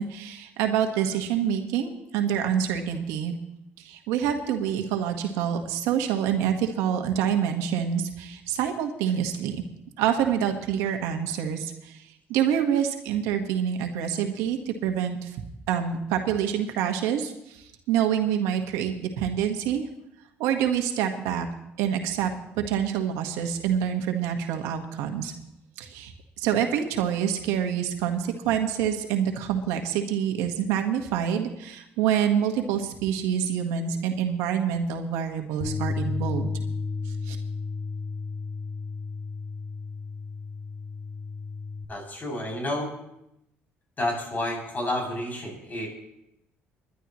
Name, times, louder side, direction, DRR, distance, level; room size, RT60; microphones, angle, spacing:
voice 1, 0.0-3.4 3.8-9.6 10.0-11.9 12.3-15.3 15.7-19.9 20.4-21.5 21.8-22.3 22.6-25.3 25.8-26.1 26.4-36.5 37.3-37.4, right 9 dB, 85° right, 5 dB, 1.4 m, -26 dB
Bass guitar, 35.6-41.9, left 4 dB, 50° left, 1.9 m, -33 dB
voice 2, 41.9-42.9 44.0-45.9, left 1 dB, 35° left, 0 dB, 7.2 m, -30 dB
28.5 x 11.0 x 3.1 m, 0.82 s
supercardioid pair, 75°, 5 cm